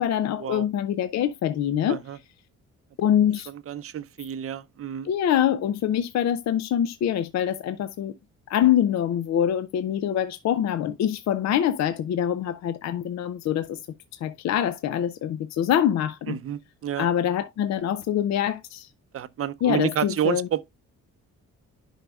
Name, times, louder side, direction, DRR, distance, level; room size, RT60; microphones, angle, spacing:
voice 1, 0.0-2.0 3.0-3.5 5.0-8.1 8.5-13.8 14.1-16.4 17.0-18.9 19.6-20.5, left 10 dB, 60° left, 0.6 m, -24 dB
voice 2, 1.9-2.2 3.5-5.1 16.3-17.1 19.1-20.6, right 10 dB, 50° right, 0.6 m, -29 dB
10.5 x 5.5 x 2.3 m
cardioid pair, 90°, 30 cm